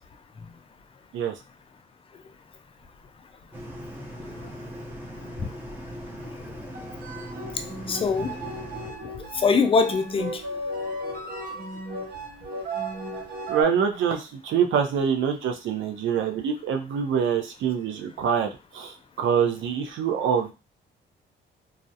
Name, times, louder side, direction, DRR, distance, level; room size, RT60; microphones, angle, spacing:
sound 1, 3.5-8.9, equal, 10° right, 0.6 m, -39 dB
sound 2, 6.6-13.6, right 1 dB, 50° right, 0.8 m, -35 dB
voice 1, 7.5-8.4 9.0-10.6 11.0-11.1, left 4 dB, 30° left, 8 dB, 0.4 m, -24 dB
voice 2, 13.5-20.5, right 7 dB, 75° right, 5 dB, 0.5 m, -25 dB
2.4 x 2.0 x 2.7 m, 0.29 s
cardioid pair, 90°, 20 cm